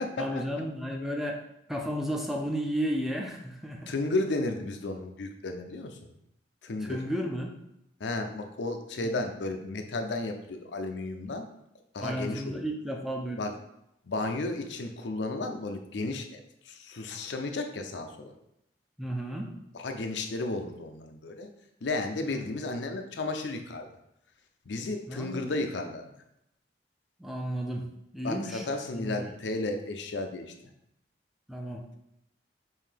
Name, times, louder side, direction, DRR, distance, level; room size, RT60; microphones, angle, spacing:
voice 1, 0.2-1.4 1.7-3.9 6.8-7.5 9.0-9.3 12.0-13.5 19.0-19.5 22.2-22.5 25.1-25.6 27.2-27.9 28.1-28.7 28.9-29.3 31.5-32.0, equal, ahead, 1 dB, 0.4 m, -33 dB
voice 2, 3.9-6.1 6.6-7.0 8.0-11.5 11.9-12.6 13.4-13.5 14.1-18.3 19.7-21.5 21.8-23.9 24.7-26.1 28.2-30.5, left 2 dB, 80° left, 5 dB, 0.5 m, -33 dB
5.5 x 2.7 x 3.4 m, 0.81 s
head